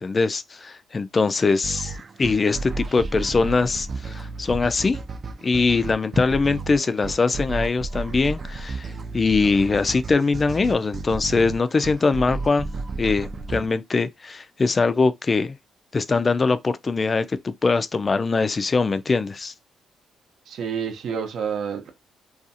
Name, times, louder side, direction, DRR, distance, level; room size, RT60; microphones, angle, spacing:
voice 1, 0.0-1.9 2.2-5.0 5.4-12.7 13.0-15.6 15.9-19.5, left 4 dB, 30° left, 0.3 m, -22 dB
sound 1, 1.6-13.7, right 3 dB, 40° right, 0.4 m, -33 dB
voice 2, 20.5-21.9, right 7 dB, 65° right, 0.7 m, -29 dB
2.5 x 2.3 x 2.7 m
cardioid pair, 90°, 0 cm